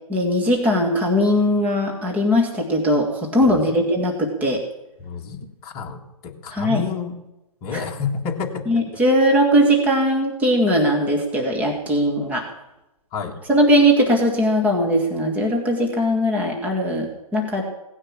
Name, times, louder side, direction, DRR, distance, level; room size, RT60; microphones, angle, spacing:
voice 1, 0.1-4.6 6.5-6.8 7.7-7.8 8.7-12.4 13.5-17.6, equal, 10° right, 1 dB, 1.8 m, -19 dB
voice 2, 3.4-3.8 5.0-7.2 7.6-8.8 13.1-13.4, left 5 dB, 25° left, 1 dB, 2.0 m, -30 dB
17.5 x 9.8 x 7.4 m, 0.94 s
hypercardioid pair, 155°, 19 cm